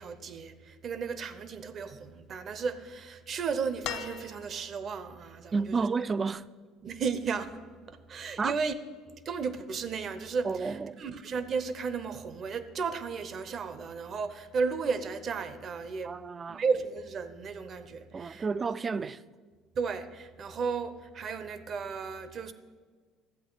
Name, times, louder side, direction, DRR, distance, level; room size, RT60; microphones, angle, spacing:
voice 1, 0.0-5.9 6.8-8.7 9.1-16.2 16.5-18.5 19.8-22.5, right 5 dB, 50° right, 0.7 m, -34 dB
sound 1, 3.8-4.9 6.4-6.5, left 9 dB, 70° left, 0.6 m, -39 dB
voice 2, 5.5-6.5 8.4-8.6 10.4-11.0 16.0-16.6 18.1-19.2, right 4 dB, 30° right, 0.3 m, -31 dB
12.5 x 8.0 x 3.9 m
supercardioid pair, 85°, 0 cm